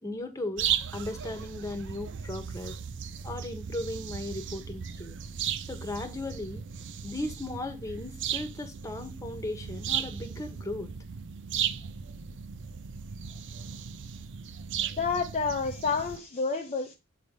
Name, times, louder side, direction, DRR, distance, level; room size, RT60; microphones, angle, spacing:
voice 1, 0.0-2.8 3.2-5.2 5.7-6.7 7.0-10.9, left 2 dB, 15° left, 1.2 m, -37 dB
sound 1, 0.6-16.2, right 8 dB, 55° right, 0.5 m, -36 dB
voice 2, 14.9-17.0, left 5 dB, 30° left, 0.6 m, -29 dB
7.7 x 3.4 x 5.3 m
head